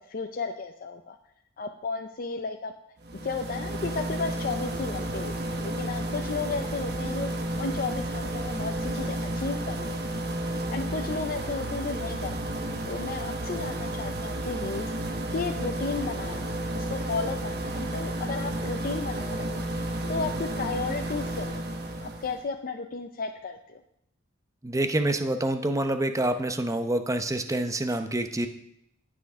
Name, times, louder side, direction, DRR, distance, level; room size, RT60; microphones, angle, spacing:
voice 1, 0.1-1.2 1.6-2.7 3.1-10.2 10.7-14.9 15.3-19.6 20.1-23.8, left 4 dB, 45° left, 5 dB, 0.5 m, -34 dB
sound 1, 3.0-22.4, right 1 dB, 55° right, 1.1 m, -32 dB
voice 2, 24.6-28.5, right 1 dB, 15° right, 8 dB, 0.7 m, -27 dB
17.5 x 6.2 x 3.6 m, 0.78 s
head